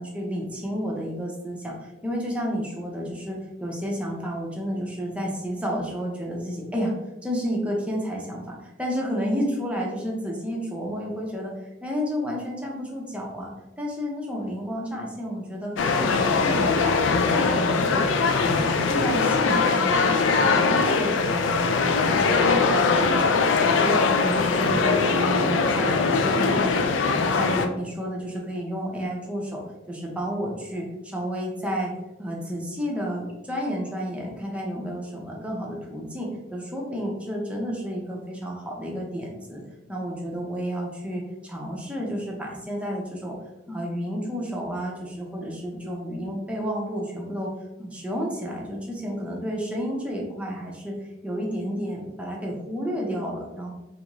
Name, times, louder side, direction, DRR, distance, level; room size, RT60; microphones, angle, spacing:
voice 1, 0.0-6.9 7.2-11.5 11.8-18.1 18.4-24.0 24.2-31.9 32.2-39.6 39.9-43.4 43.7-47.5 47.8-51.0 51.2-53.7, equal, 5° right, -2 dB, 0.6 m, -31 dB
sound 1, 15.8-27.7, left 4 dB, 75° left, 0.3 m, -21 dB
3.4 x 2.5 x 3.0 m, 0.99 s
head